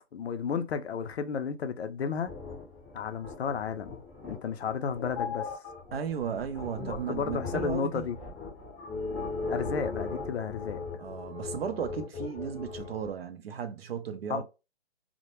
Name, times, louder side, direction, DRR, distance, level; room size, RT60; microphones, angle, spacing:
voice 1, 0.1-2.3 2.9-5.5 6.9-8.2 9.5-10.8 14.3-14.4, left 6 dB, 65° left, 0.5 m, -33 dB
sound 1, 2.3-13.1, left 4 dB, ahead, 0.7 m, -38 dB
voice 2, 5.9-8.0 11.0-14.4, right 7 dB, 60° right, 0.6 m, -35 dB
2.1 x 2.1 x 2.9 m
hypercardioid pair, 155°, 35 cm